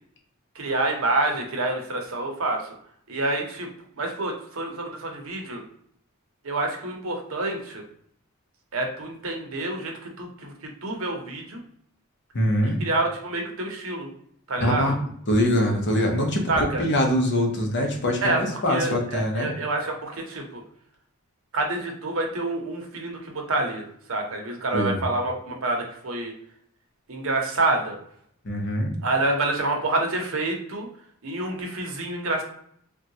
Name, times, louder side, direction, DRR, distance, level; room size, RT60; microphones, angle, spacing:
voice 1, 0.5-2.7 3.1-3.7 4.0-5.6 6.4-7.8 8.7-11.6 12.8-14.1 14.5-15.0 16.5-16.9 18.2-20.6 21.5-26.3 27.1-28.0 29.0-30.9 31.2-32.4, right 2 dB, 70° right, 2 dB, 0.7 m, -27 dB
voice 2, 12.3-12.8 14.6-14.9 15.3-16.5 16.8-19.5 24.7-25.0 28.4-28.9, equal, 55° left, 2 dB, 0.7 m, -23 dB
3.6 x 2.3 x 2.7 m, 0.66 s
head